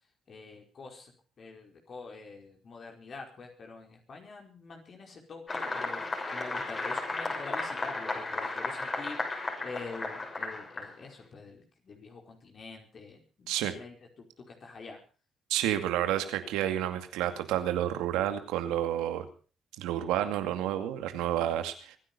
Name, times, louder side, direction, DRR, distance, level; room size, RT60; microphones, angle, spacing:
voice 1, 0.3-6.0 6.3-15.0, left 4 dB, 50° left, 1 dB, 4.9 m, -46 dB
sound 1, 5.5-10.9, left 3 dB, 35° left, 6.2 m, -34 dB
voice 2, 15.5-19.3 19.8-22.0, right 12 dB, 85° right, 8 dB, 2.3 m, -30 dB
23.5 x 10.0 x 5.4 m, 0.37 s
supercardioid pair, 65°, 0 cm